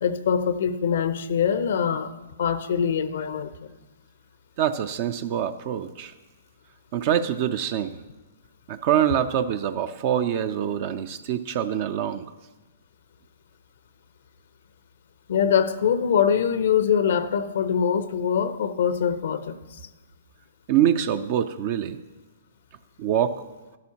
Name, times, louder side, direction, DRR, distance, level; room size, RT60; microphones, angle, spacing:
voice 1, 0.0-2.1 2.4-3.5 15.3-19.8, left 7 dB, 65° left, 0.6 m, -23 dB
voice 2, 4.6-6.1 6.9-7.9 8.7-12.2 20.7-22.0 23.0-23.4, right 10 dB, 45° right, 0.4 m, -25 dB
12.0 x 11.5 x 2.9 m
hypercardioid pair, 125°, 0 cm